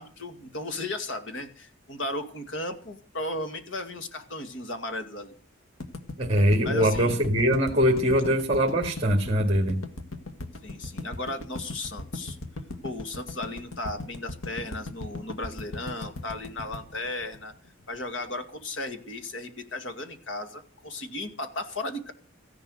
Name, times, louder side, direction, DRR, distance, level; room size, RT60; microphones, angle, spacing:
voice 1, 0.0-5.4 6.6-7.2 10.6-12.4 12.8-17.5 17.9-22.1, left 2 dB, 65° left, 8 dB, 2.1 m, -35 dB
sound 1, 5.8-18.0, left 2 dB, 85° left, 1.6 m, -38 dB
voice 2, 6.2-9.8, equal, 30° right, 1 dB, 2.2 m, -22 dB
15.5 x 11.0 x 6.4 m, 0.40 s
head